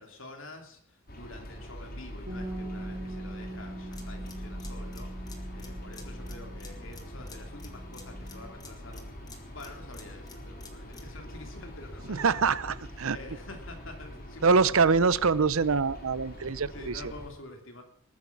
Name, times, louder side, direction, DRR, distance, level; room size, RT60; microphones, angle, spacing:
voice 1, 0.0-9.0 9.5-12.6 12.9-14.9 16.7-17.8, left 2 dB, 60° left, 4 dB, 3.0 m, -48 dB
sound 1, 1.1-17.3, equal, 45° left, 3.7 m, -43 dB
Bass guitar, 2.3-8.5, right 1 dB, 45° right, 5.1 m, -42 dB
sound 2, 3.9-11.2, left 4 dB, 20° left, 2.0 m, -52 dB
voice 2, 12.1-13.2 14.4-17.0, right 5 dB, 70° right, 18 dB, 0.7 m, -24 dB
20.0 x 9.5 x 6.0 m, 0.62 s
head